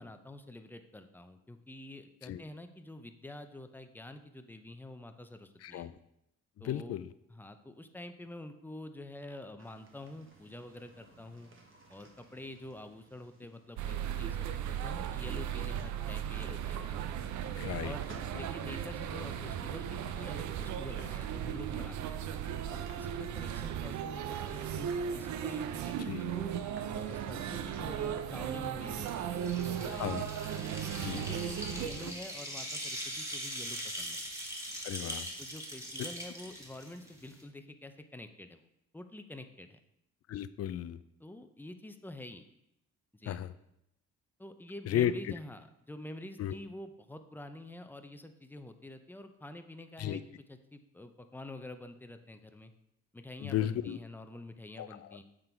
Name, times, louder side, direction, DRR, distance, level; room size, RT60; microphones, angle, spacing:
voice 1, 0.0-5.9 6.6-7.0 7.3-11.5 11.9-17.0 17.8-18.1 18.3-22.2 22.7-26.5 26.9-30.4 31.0-34.3 35.4-38.6 38.9-39.8 41.2-42.5 43.1-43.4 44.4-50.2 50.5-52.7 53.1-55.2, left 1 dB, 5° left, 8 dB, 0.5 m, -47 dB
voice 2, 5.6-5.9 6.6-7.1 17.6-17.9 18.3-18.4 26.1-26.3 30.0-30.2 31.0-31.2 34.8-35.3 40.3-41.0 43.3-43.5 44.9-45.1 46.4-46.5 50.0-50.2 53.4-54.0 54.8-54.9, left 11 dB, 55° left, 14 dB, 0.4 m, -34 dB
sound 1, 9.6-27.8, right 3 dB, 40° right, 1.4 m, -58 dB
sound 2, 13.8-32.1, right 9 dB, 70° right, 0.5 m, -36 dB
sound 3, 29.1-37.4, equal, 10° right, 1.4 m, -41 dB
7.8 x 3.8 x 4.4 m, 0.82 s
cardioid pair, 90°, 30 cm